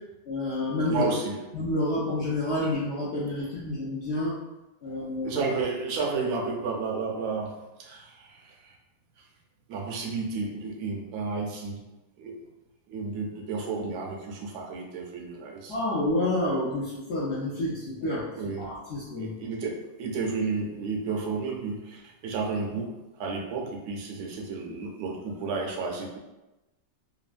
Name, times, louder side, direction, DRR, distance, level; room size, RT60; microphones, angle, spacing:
voice 1, 0.3-1.1 1.5-4.4 4.8-5.4 15.7-18.2 18.6-19.3, left 1 dB, 65° left, -9 dB, 0.7 m, -29 dB
voice 2, 0.9-1.4 5.2-7.5 7.8-8.7 9.7-11.8 12.2-12.4 12.9-15.7 18.0-18.1 18.4-18.7 19.2-22.9 23.2-26.2, right 4 dB, 75° right, 0 dB, 1.0 m, -32 dB
3.2 x 2.2 x 2.4 m, 1.0 s
omnidirectional pair, 1.9 m